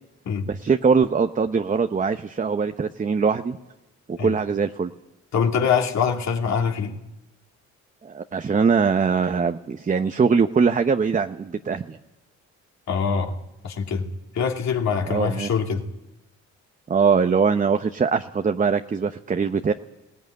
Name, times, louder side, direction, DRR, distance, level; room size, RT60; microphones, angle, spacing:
voice 1, 0.5-3.6 4.1-4.9 8.0-12.0 15.1-15.5 16.9-19.7, right 5 dB, 25° right, 0.8 m, -22 dB
voice 2, 5.3-7.0 12.9-13.4 13.6-14.1 14.3-15.9, left 6 dB, 65° left, 2.7 m, -24 dB
20.0 x 17.5 x 9.5 m
cardioid pair, 90°, 30 cm